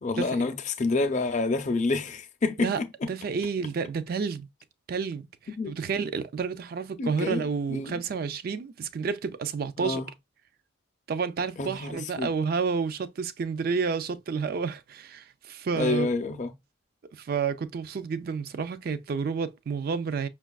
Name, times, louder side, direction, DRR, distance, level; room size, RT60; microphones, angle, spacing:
voice 1, 0.0-2.7 5.6-5.8 7.0-8.0 9.8-10.1 11.6-12.3 15.7-16.5, left 3 dB, 35° left, 0.5 m, -28 dB
voice 2, 2.6-4.5 4.9-10.0 11.1-16.1 17.1-20.3, right 5 dB, 45° right, 0.3 m, -30 dB
5.8 x 2.3 x 2.3 m
head